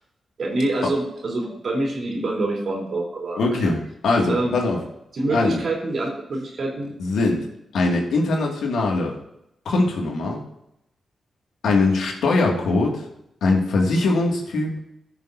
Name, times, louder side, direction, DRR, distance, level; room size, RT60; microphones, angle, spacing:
voice 1, 0.4-3.7 4.3-4.6 5.1-6.9, right 2 dB, 60° right, -1 dB, 3.5 m, -26 dB
voice 2, 3.4-4.8 5.3-5.6 7.0-7.5 7.7-9.2 9.7-10.4 11.6-13.1 13.4-14.8, left 3 dB, 85° left, 0 dB, 2.1 m, -21 dB
14.5 x 6.8 x 2.7 m, 0.80 s
cardioid pair, 70°, 0 cm